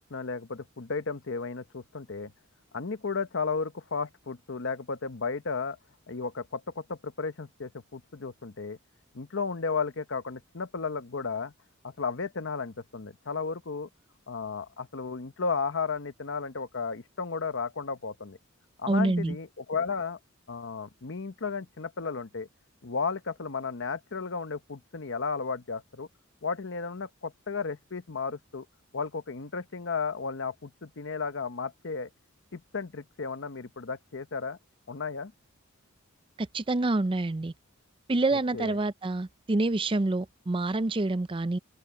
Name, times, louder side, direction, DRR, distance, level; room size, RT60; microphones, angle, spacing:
voice 1, 0.1-2.3 2.7-5.8 6.1-8.8 9.1-11.5 11.8-13.9 14.3-18.4 18.8-20.2 20.5-22.5 22.8-26.1 26.4-28.7 28.9-32.1 32.5-34.6 34.9-35.3 38.5-38.8, left 4 dB, 60° left, 1.0 m, -34 dB
voice 2, 18.9-19.4 36.5-37.5 38.1-41.6, right 2 dB, 25° right, 0.5 m, -27 dB
open air
head